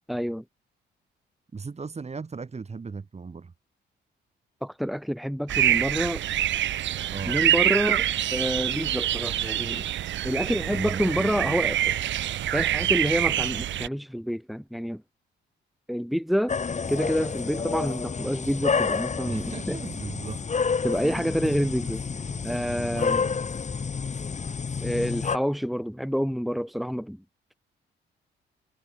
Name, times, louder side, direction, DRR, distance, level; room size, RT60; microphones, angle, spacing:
voice 1, 0.1-0.4 4.6-6.2 7.3-9.9 10.2-11.9 12.5-15.0 15.9-16.6 16.9-19.8 20.8-22.0 22.4-23.3 24.8-27.2, equal, ahead, 4.3 m, -28 dB
voice 2, 1.5-3.5 7.1-7.5 10.7-11.6 19.2-20.4 21.0-21.7 22.1-23.4, right 4 dB, 35° right, 7.8 m, -37 dB
sound 1, 5.5-13.9, right 12 dB, 70° right, 1.1 m, -26 dB
sound 2, 16.5-25.4, left 5 dB, 35° left, 3.2 m, -29 dB
cardioid pair, 90°, 20 cm